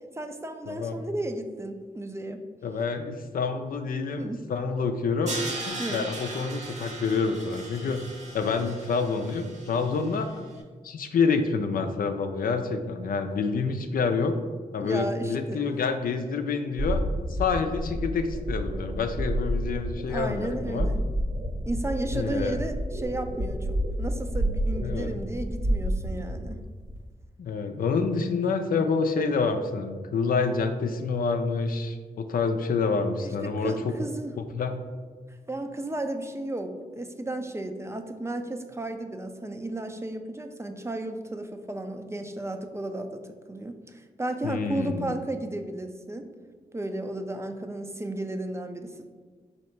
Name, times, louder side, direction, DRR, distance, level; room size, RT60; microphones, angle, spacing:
voice 1, 0.1-2.4 4.2-4.5 5.8-6.1 14.8-15.7 20.1-21.0 21.7-26.6 33.2-34.3 35.3-43.2 43.5-46.3 46.7-49.1, right 1 dB, 20° right, 6 dB, 0.4 m, -34 dB
voice 2, 0.7-1.0 2.6-5.3 5.6-8.0 8.3-10.3 10.8-14.4 14.7-17.0 17.3-20.9 22.1-22.6 24.8-25.1 27.4-33.9 34.5-34.8 44.4-45.1, left 4 dB, 75° left, 6 dB, 0.4 m, -27 dB
Crash cymbal, 5.3-10.3, right 2 dB, 50° right, 0.9 m, -38 dB
sound 1, 16.8-27.0, equal, 80° right, 1.5 m, -30 dB
4.2 x 2.8 x 4.4 m, 1.5 s
cardioid pair, 55°, 15 cm